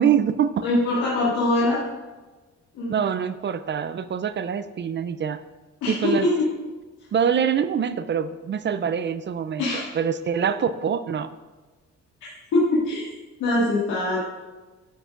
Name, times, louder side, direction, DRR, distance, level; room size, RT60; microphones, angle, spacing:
voice 1, 0.0-0.7 2.9-5.4 5.9-6.3 7.1-11.3, right 8 dB, 40° right, 12 dB, 0.4 m, -24 dB
voice 2, 0.6-1.8 2.7-3.1 5.8-6.3 9.6-9.8 12.5-13.1 13.4-14.2, left 2 dB, 85° left, -8 dB, 2.0 m, -22 dB
9.3 x 7.9 x 2.5 m, 1.2 s
cardioid pair, 90°, 30 cm